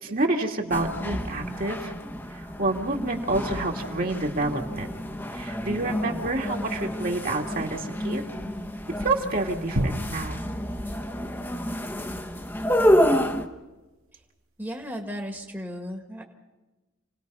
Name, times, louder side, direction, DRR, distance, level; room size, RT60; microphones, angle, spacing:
voice 1, 0.0-1.9 2.3-4.9 5.3-8.2 9.0-10.4, right 2 dB, 45° right, 1 dB, 2.3 m, -28 dB
sound 1, 0.7-13.5, equal, 10° left, 1.2 m, -29 dB
sound 2, 9.8-12.6, right 1 dB, 90° right, 2.1 m, -33 dB
voice 2, 14.6-16.2, equal, 10° right, 2 dB, 1.8 m, -35 dB
29.0 x 19.0 x 5.5 m, 1.1 s
head